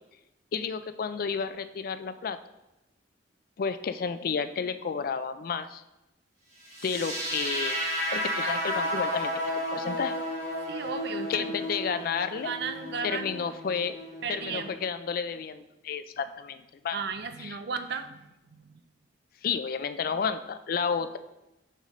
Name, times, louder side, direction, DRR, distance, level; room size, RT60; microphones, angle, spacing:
voice 1, 0.5-2.4 3.6-5.8 6.8-7.8 8.1-10.2 11.3-12.5 13.0-14.0 14.3-17.0 17.4-17.6 19.4-21.2, left 6 dB, 50° left, 11 dB, 0.3 m, -31 dB
sound 1, 6.7-14.7, equal, 40° right, 1.9 m, -33 dB
voice 2, 10.7-11.7 12.4-13.5 14.2-14.7 16.9-18.8, right 5 dB, 60° right, 9 dB, 0.5 m, -35 dB
6.5 x 5.1 x 3.1 m, 0.95 s
head